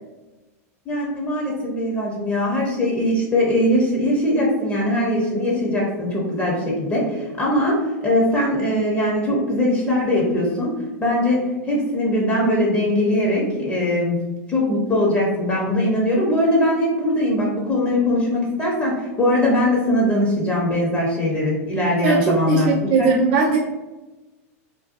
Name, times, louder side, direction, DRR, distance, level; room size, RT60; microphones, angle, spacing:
voice 1, 0.9-10.7 11.0-14.2 14.5-22.7 23.0-23.1, left 1 dB, 20° left, -4 dB, 0.6 m, -21 dB
voice 2, 22.0-23.6, right 4 dB, 55° right, 0 dB, 0.4 m, -19 dB
2.6 x 2.2 x 2.5 m, 1.1 s
hypercardioid pair, 115°, 8 cm